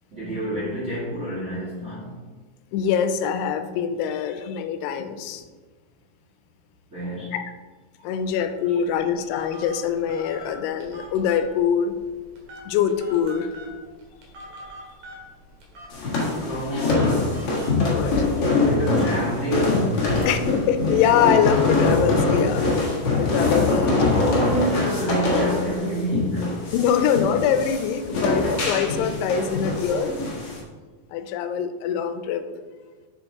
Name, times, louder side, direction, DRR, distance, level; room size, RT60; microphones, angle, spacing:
voice 1, 0.1-2.2 6.9-7.3 8.0-8.1 8.7-8.8 16.0-17.4 18.3-20.3 23.9-26.6, equal, 30° right, -7 dB, 1.4 m, -28 dB
voice 2, 2.7-5.4 7.3-7.4 8.0-11.9 12.7-13.5 17.9-18.3 20.3-22.6 23.1-24.0 26.7-30.2 31.1-32.4, left 8 dB, 85° left, 9 dB, 2.7 m, -23 dB
Telephone, 8.6-18.4, equal, 65° right, 3.4 m, -45 dB
sound 1, 15.9-30.6, left 3 dB, 50° left, 2.0 m, -23 dB
7.9 x 6.9 x 3.6 m, 1.4 s
omnidirectional pair, 4.6 m